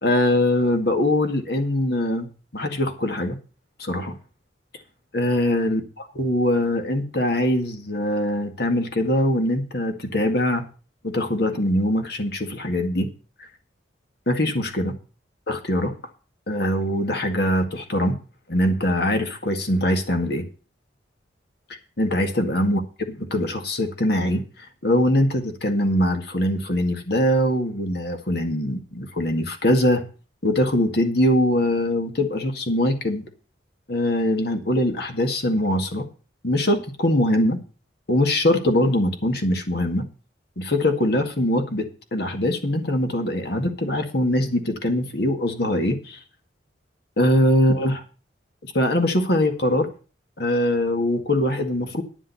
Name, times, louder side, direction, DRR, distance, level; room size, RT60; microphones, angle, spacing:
voice 1, 0.0-2.3 2.5-3.4 3.8-4.2 5.1-5.8 6.2-10.6 11.0-13.1 14.3-15.0 15.5-15.9 16.5-18.2 18.5-20.5 22.0-22.8 23.3-24.4 24.8-30.0 30.4-33.3 33.9-36.1 36.4-37.6 38.1-40.0 40.6-46.2 47.2-48.0 48.6-49.9 50.4-52.0, left 1 dB, 60° left, 6 dB, 2.0 m, -22 dB
10.5 x 7.3 x 6.9 m, 0.36 s
head